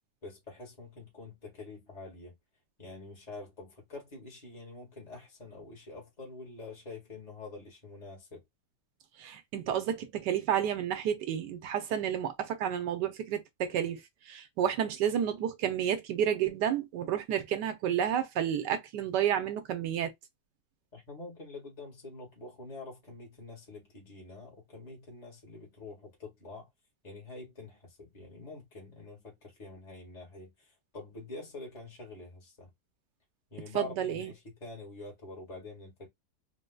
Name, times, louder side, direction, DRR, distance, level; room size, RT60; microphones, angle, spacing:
voice 1, 0.2-2.3 2.8-8.4 20.9-26.7 27.0-32.7 33.5-36.1, left 3 dB, 25° left, 1.7 m, -46 dB
voice 2, 9.2-14.0 14.3-20.1 33.7-34.3, right 9 dB, 80° right, 1.3 m, -30 dB
4.0 x 2.6 x 2.2 m
omnidirectional pair, 1.8 m